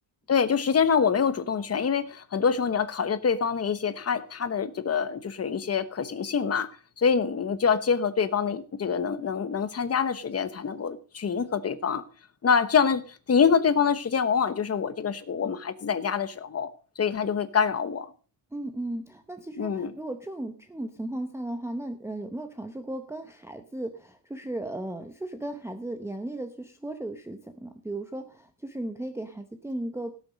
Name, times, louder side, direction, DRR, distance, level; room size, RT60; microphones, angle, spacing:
voice 1, 0.3-12.0 12.4-16.7 17.0-18.1 19.6-19.9, left 6 dB, 35° left, 1.0 m, -25 dB
voice 2, 18.5-30.2, right 1 dB, 5° right, 0.8 m, -36 dB
17.5 x 7.0 x 5.1 m
wide cardioid pair, 165°, 43 cm